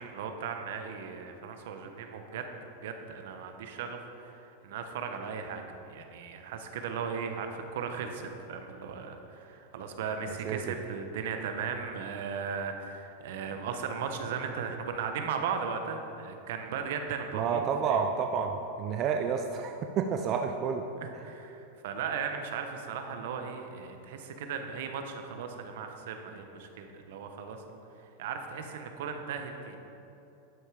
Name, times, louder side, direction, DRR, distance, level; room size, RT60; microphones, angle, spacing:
voice 1, 0.0-2.5 2.8-17.7 21.0-27.6 28.2-29.8, right 6 dB, 70° right, 5 dB, 1.0 m, -37 dB
voice 2, 10.2-10.7 17.3-20.8 21.1-21.2, right 6 dB, 40° right, 4 dB, 0.5 m, -30 dB
11.0 x 5.5 x 4.9 m, 2.9 s
hypercardioid pair, 120°, 0 cm